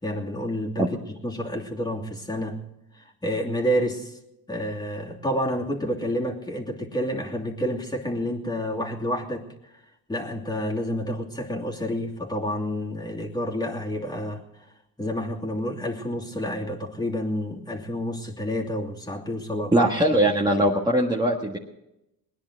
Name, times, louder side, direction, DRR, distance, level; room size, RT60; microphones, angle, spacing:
voice 1, 0.0-2.6 3.2-4.2 4.5-9.4 10.1-14.4 15.0-20.2, equal, 10° left, -1 dB, 2.8 m, -29 dB
voice 2, 19.7-21.6, right 1 dB, 10° right, -3 dB, 1.7 m, -21 dB
20.5 x 10.5 x 6.4 m, 0.88 s
cardioid pair, 95°, 40 cm